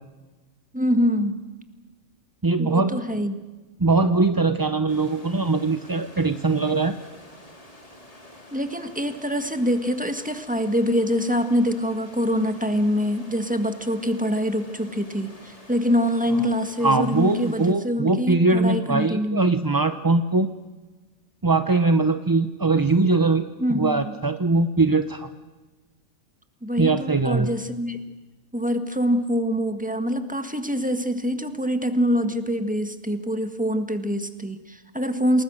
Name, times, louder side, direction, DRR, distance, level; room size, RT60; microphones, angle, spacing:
voice 1, 0.7-1.4 2.6-3.3 8.5-19.5 23.6-24.2 26.6-28.0 28.5-35.4, equal, 5° right, 8 dB, 1.6 m, -25 dB
voice 2, 2.4-3.2 3.8-7.0 16.8-20.5 21.4-23.4 23.7-25.3 26.8-27.5, right 3 dB, 25° right, 9 dB, 0.5 m, -21 dB
sound 1, 4.9-17.7, left 1 dB, 25° left, 2.6 m, -48 dB
28.5 x 20.5 x 6.5 m, 1.2 s
omnidirectional pair, 1.4 m